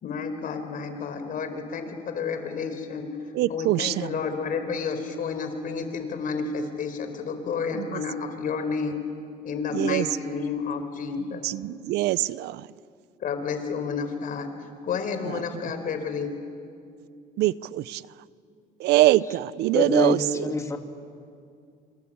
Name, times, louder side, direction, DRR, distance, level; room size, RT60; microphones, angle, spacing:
voice 1, 0.0-3.1 3.5-9.0 9.4-11.4 13.2-14.5 14.8-16.3, left 5 dB, 55° left, 8 dB, 4.3 m, -30 dB
voice 2, 3.3-4.1 7.8-8.0 9.7-10.1 11.4-12.7 15.3-15.4 17.4-18.0 18.8-20.5, right 16 dB, 80° right, 19 dB, 0.6 m, -24 dB
voice 3, 19.7-20.8, left 2 dB, 15° left, 4 dB, 2.3 m, -25 dB
26.5 x 25.5 x 8.7 m, 2.3 s
cardioid pair, 110°, 17 cm